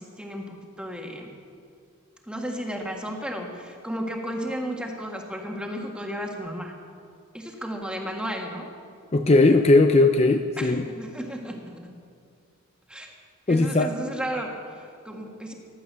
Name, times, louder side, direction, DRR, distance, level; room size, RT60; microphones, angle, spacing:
voice 1, 0.0-1.3 2.3-6.7 7.3-8.7 10.6-11.9 12.9-13.1 13.5-15.5, equal, 5° right, 1 dB, 1.7 m, -34 dB
voice 2, 9.1-10.8 13.5-13.9, left 2 dB, 30° left, 6 dB, 0.5 m, -18 dB
15.5 x 11.0 x 6.9 m, 2.3 s
head